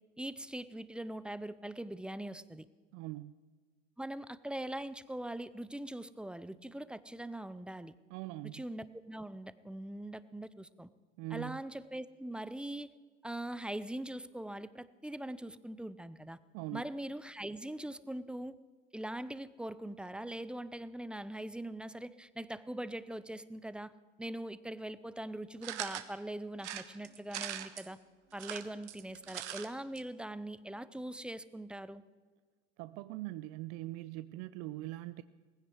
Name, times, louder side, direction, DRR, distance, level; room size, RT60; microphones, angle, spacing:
voice 1, 0.2-2.7 4.0-7.9 8.4-10.9 11.3-12.9 13.2-16.4 16.7-18.6 18.9-23.9 24.2-28.0 28.3-32.0, right 1 dB, 5° right, 16 dB, 0.5 m, -42 dB
voice 2, 2.9-3.4 8.1-8.6 11.2-11.6 16.5-16.8 32.8-35.2, right 18 dB, 50° right, 14 dB, 0.6 m, -42 dB
sound 1, 25.6-26.1 26.6-27.9 28.3-29.7 30.0-30.1 30.3-30.4, right 12 dB, 75° right, 1.3 m, -41 dB
19.0 x 16.0 x 4.7 m, 1.4 s
hypercardioid pair, 90°, 36 cm